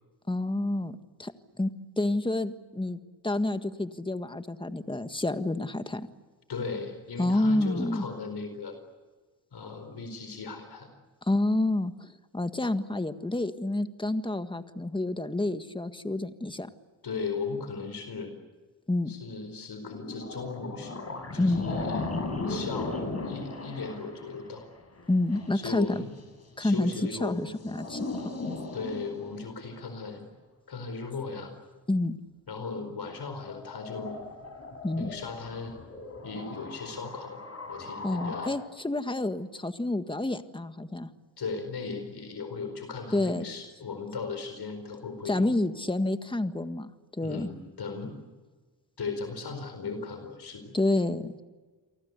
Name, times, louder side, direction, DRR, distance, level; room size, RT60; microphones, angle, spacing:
voice 1, 0.3-1.3 1.6-1.7 2.0-6.1 7.2-8.0 11.2-16.7 18.9-19.1 21.4-21.6 25.1-26.0 26.6-26.9 27.2-28.3 31.9-32.2 34.8-35.1 38.0-41.1 43.1-43.4 45.2-47.5 50.7-51.4, left 2 dB, 10° left, 9 dB, 1.7 m, -29 dB
voice 2, 6.5-8.8 9.5-10.9 17.0-18.3 19.1-21.0 21.3-22.1 22.5-24.7 25.5-26.1 26.6-27.4 28.7-30.2 30.7-31.5 32.5-34.2 35.0-35.8 36.2-37.4 37.7-38.5 41.4-45.5 47.2-48.2 49.0-50.7, left 4 dB, 55° left, 7 dB, 4.7 m, -37 dB
sound 1, 19.8-26.2 27.2-29.9 33.3-38.5, left 3 dB, 30° left, 6.9 m, -37 dB
29.5 x 24.0 x 8.3 m, 1.4 s
cardioid pair, 90°, 46 cm